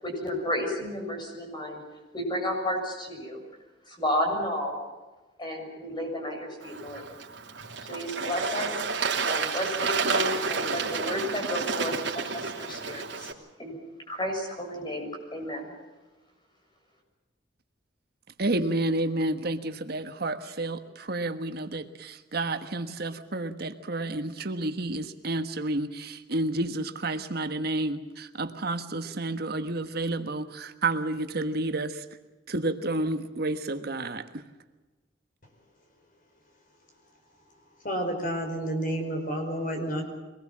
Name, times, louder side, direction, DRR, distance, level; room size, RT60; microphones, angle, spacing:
voice 1, 0.0-1.8 2.1-3.4 3.8-4.8 5.4-7.0 7.8-8.8 9.3-13.3 13.6-13.8 14.1-15.7, left 1 dB, 25° left, 2 dB, 6.9 m, -32 dB
Bird / Water, 6.6-13.3, right 5 dB, 75° right, 3.1 m, -30 dB
voice 2, 18.4-19.6 19.9-20.7 21.1-21.3 21.7-21.8 22.3-23.4 23.9-24.0 24.5-25.9 26.3-26.7 27.0-27.9 28.6-30.4 30.8-31.9 32.6-33.5 33.9-34.0, right 2 dB, 55° right, 8 dB, 1.4 m, -29 dB
voice 3, 37.8-40.0, right 1 dB, 50° left, 4 dB, 5.3 m, -30 dB
24.0 x 19.5 x 7.4 m, 1.2 s
head